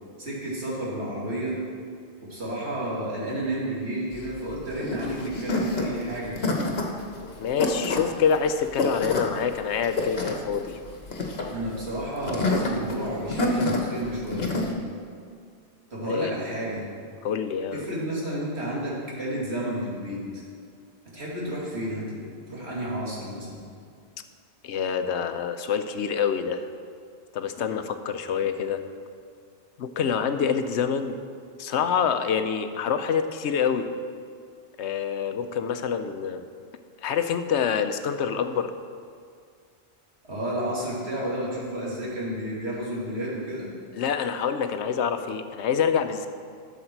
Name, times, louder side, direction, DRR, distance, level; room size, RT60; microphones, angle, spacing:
voice 1, 0.2-1.6 2.2-6.5 11.5-14.6 15.9-16.9 17.7-20.4 21.0-23.6 40.2-43.7, right 1 dB, 70° right, -6 dB, 2.8 m, -31 dB
sound 1, 4.1-14.7, left 2 dB, 65° left, 1.4 m, -28 dB
voice 2, 7.4-10.8 16.0-16.3 17.2-17.9 24.6-26.6 27.3-28.8 29.8-31.2 31.6-33.9 34.8-36.4 37.0-38.7 43.9-46.3, left 7 dB, 85° left, 9 dB, 0.9 m, -26 dB
12.0 x 7.2 x 4.5 m, 2.2 s
omnidirectional pair, 1.1 m